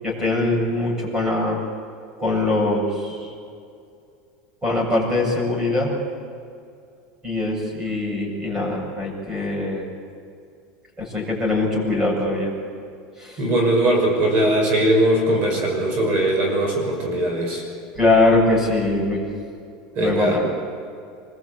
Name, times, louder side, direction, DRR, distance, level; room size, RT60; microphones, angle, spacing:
voice 1, 0.0-1.6 2.2-3.3 4.6-5.9 7.2-9.9 11.0-12.5 13.2-13.4 17.9-19.2 20.0-20.4, left 2 dB, 15° right, 0 dB, 7.9 m, -22 dB
voice 2, 13.4-17.6 19.9-20.4, right 1 dB, 45° right, 2 dB, 6.2 m, -20 dB
25.5 x 22.0 x 8.3 m, 2.3 s
supercardioid pair, 150°, 4 cm